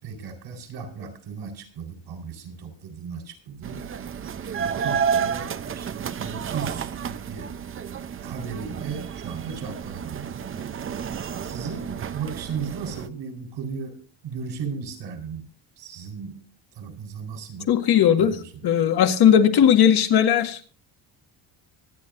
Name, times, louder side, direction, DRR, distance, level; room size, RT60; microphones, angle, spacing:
voice 1, 0.0-3.9 4.6-7.5 8.2-10.6 11.4-15.5 15.8-16.4 16.8-17.7 18.2-18.4, right 6 dB, 70° right, 5 dB, 4.3 m, -36 dB
sound 1, 3.6-13.1, right 7 dB, 30° right, 0.6 m, -31 dB
voice 2, 17.7-20.7, left 9 dB, 60° left, 5 dB, 1.9 m, -18 dB
25.0 x 9.5 x 2.6 m, 0.42 s
cardioid pair, 155°, 44 cm